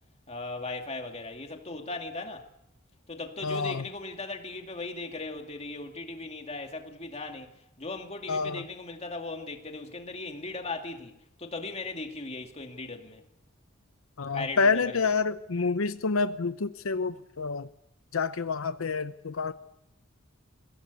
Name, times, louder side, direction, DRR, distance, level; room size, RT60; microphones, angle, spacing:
voice 1, 0.3-2.5 3.1-11.1 11.4-13.2 14.3-15.0, left 3 dB, 30° left, 2.4 m, -38 dB
voice 2, 3.4-3.8 8.3-8.6 14.2-17.7 18.1-19.5, left 4 dB, 85° left, 0.7 m, -28 dB
22.0 x 17.0 x 8.4 m
head